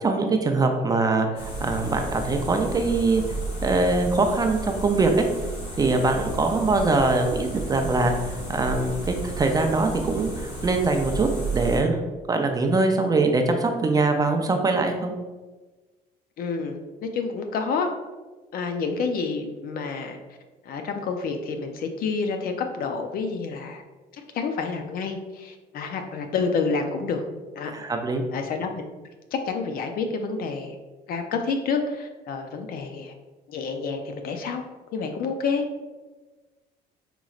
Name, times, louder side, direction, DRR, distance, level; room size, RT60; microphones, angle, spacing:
voice 1, 0.0-3.2 3.6-5.3 5.8-8.1 8.5-15.1 27.7-28.2, right 3 dB, 20° right, 4 dB, 0.4 m, -23 dB
sound 1, 1.3-11.8, right 2 dB, 80° left, 1.5 m, -33 dB
voice 2, 16.4-18.0 18.5-20.2 20.7-23.8 24.1-27.2 27.6-27.7 28.3-28.8 29.3-30.8 31.1-33.1 33.5-34.6 34.9-35.6, left 4 dB, 60° left, 6 dB, 0.5 m, -28 dB
5.1 x 3.0 x 2.4 m, 1.2 s
cardioid pair, 110°, 17 cm